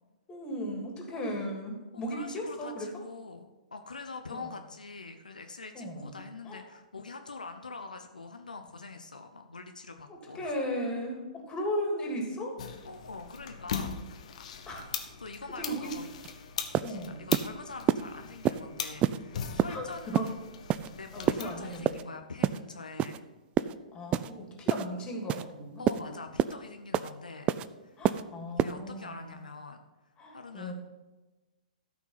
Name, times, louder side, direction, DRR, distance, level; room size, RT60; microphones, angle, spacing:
voice 1, 0.3-3.0 4.3-4.5 5.7-6.1 6.4-6.6 10.1-12.6 14.7-14.8 15.6-15.9 16.8-17.3 19.7-20.3 21.1-22.0 23.9-26.1 28.0-29.4 30.2-30.7, equal, 20° left, 0 dB, 3.0 m, -36 dB
voice 2, 1.9-10.5 12.8-13.9 15.2-16.1 16.4-16.5 16.9-20.3 20.9-23.2 25.8-27.5 27.8-28.0 28.6-29.8 30.3-30.7, left 4 dB, 85° left, 6 dB, 0.9 m, -44 dB
sound 1, 12.6-21.8, left 7 dB, 60° left, 1.3 m, -40 dB
sound 2, 16.2-16.3 16.7-16.9 17.3-17.5 17.9-18.0 18.5-18.6 19.0-19.2 19.6-19.8 20.1-20.3 20.7-20.9 21.3-21.4 21.9-22.0 22.4-22.6 23.0-23.2 23.6-23.7 24.1-24.3 24.7-24.9 25.3-25.4 25.9-26.0 26.4-26.5 26.9-27.1 27.5-27.7 28.0-28.2 28.6-28.7, right 11 dB, 25° right, 0.4 m, -27 dB
13.5 x 6.1 x 5.8 m, 1.1 s
figure-of-eight pair, 120°, 4 cm